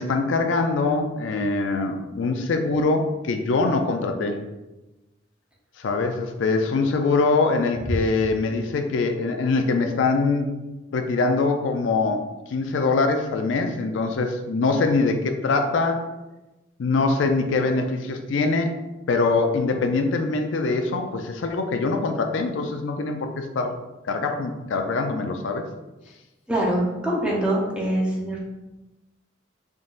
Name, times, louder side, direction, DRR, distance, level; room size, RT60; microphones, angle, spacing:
voice 1, 0.0-4.4 5.8-10.5 10.9-16.0 16.8-18.7 19.1-23.7 24.0-25.7, left 3 dB, 70° left, 5 dB, 0.4 m, -23 dB
voice 2, 26.5-28.4, right 1 dB, 5° right, -4 dB, 0.7 m, -24 dB
3.8 x 3.7 x 2.5 m, 1.0 s
head